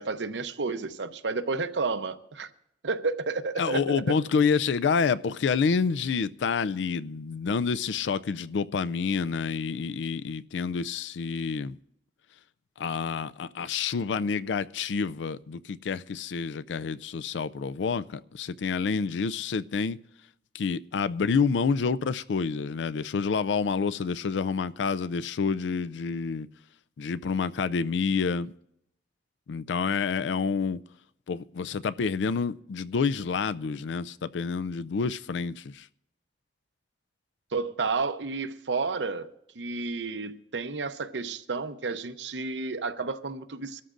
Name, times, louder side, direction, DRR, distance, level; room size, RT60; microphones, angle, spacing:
voice 1, 0.0-2.5 2.8-4.1 37.5-43.8, right 4 dB, 80° right, 0.8 m, -31 dB
voice 2, 3.6-11.8 12.8-20.0 20.5-26.5 27.0-28.5 29.5-30.8 31.3-35.9, left 5 dB, 85° left, 0.4 m, -28 dB
25.5 x 13.0 x 2.5 m
head